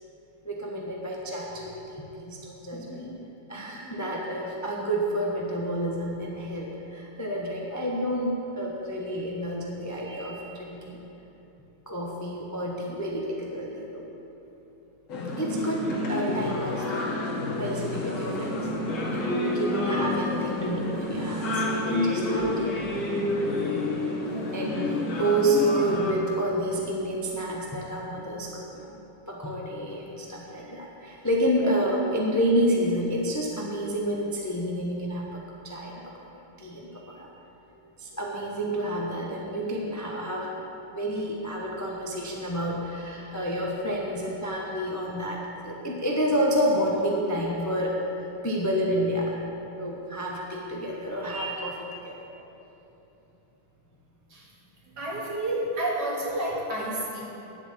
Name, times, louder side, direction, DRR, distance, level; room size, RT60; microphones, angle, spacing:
voice 1, 0.4-3.1 3.5-11.0 11.9-14.0 15.4-17.1 17.6-18.7 19.1-22.7 24.5-24.8 25.1-29.0 29.3-37.3 38.0-40.6 40.9-49.4 49.8-52.3, equal, 15° left, -2 dB, 0.7 m, -29 dB
voice 2, 2.7-3.3 3.6-4.0 15.6-15.8 24.2-24.8 31.6-31.7 37.7-37.9 52.3-52.5 54.3-54.5 54.8-57.2, right 1 dB, 50° right, -4 dB, 2.7 m, -33 dB
sound 1, 15.1-26.1, left 1 dB, 75° left, 2.5 m, -29 dB
10.5 x 8.1 x 7.4 m, 3.0 s
omnidirectional pair, 2.3 m